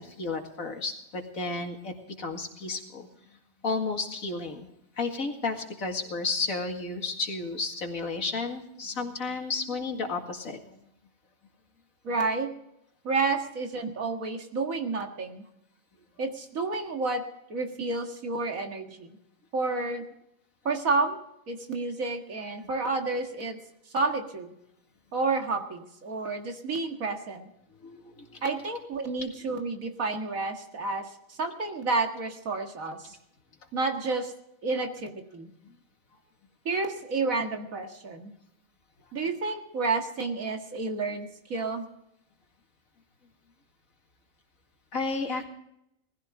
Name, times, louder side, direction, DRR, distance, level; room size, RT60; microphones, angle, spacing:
voice 1, 0.0-3.1 3.6-4.7 5.0-10.6 22.6-22.7 27.8-28.4 29.2-29.3 44.9-45.5, left 3 dB, 85° left, 4 dB, 2.5 m, -32 dB
voice 2, 12.0-12.5 13.0-15.4 16.2-17.2 17.5-19.2 19.5-20.0 20.7-21.2 21.5-23.6 23.9-24.5 25.1-27.5 28.4-33.2 33.7-34.3 34.6-35.5 36.7-38.3 39.1-41.9, right 3 dB, 90° right, 4 dB, 2.2 m, -30 dB
19.5 x 15.0 x 3.7 m, 0.79 s
omnidirectional pair, 1.4 m